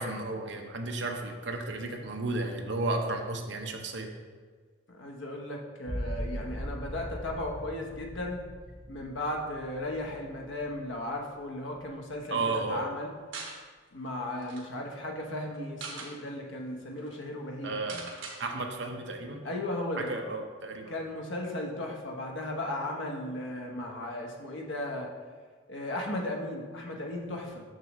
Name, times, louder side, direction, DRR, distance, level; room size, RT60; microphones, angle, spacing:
voice 1, 0.0-4.1 12.3-12.8 17.6-18.0 18.4-19.4 20.0-20.9, right 2 dB, 65° right, 3 dB, 0.7 m, -33 dB
voice 2, 4.9-8.4 8.9-13.1 13.9-17.8 19.4-20.1 20.9-25.1 25.7-27.6, left 1 dB, 75° left, 1 dB, 1.0 m, -36 dB
sound 1, 5.8-11.3 11.8-12.4, equal, 25° left, 1.5 m, -40 dB
sound 2, 13.3-13.6 14.1-14.2 14.4-14.6 15.5-16.1 16.7-16.8 17.0-17.2 17.9-18.4, right 4 dB, 80° right, 1.2 m, -41 dB
6.6 x 6.2 x 3.1 m, 1.5 s
head